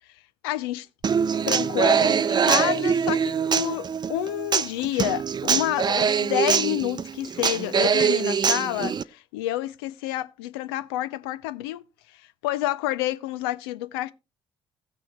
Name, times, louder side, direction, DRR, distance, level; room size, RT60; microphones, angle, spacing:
voice 1, 0.4-0.9 1.5-11.8 12.1-14.1, left 14 dB, 75° left, 0.5 m, -29 dB
Human voice / Acoustic guitar, 1.0-9.0, right 7 dB, 35° right, 0.6 m, -23 dB
16.5 x 6.2 x 3.1 m
figure-of-eight pair, 45°, 13 cm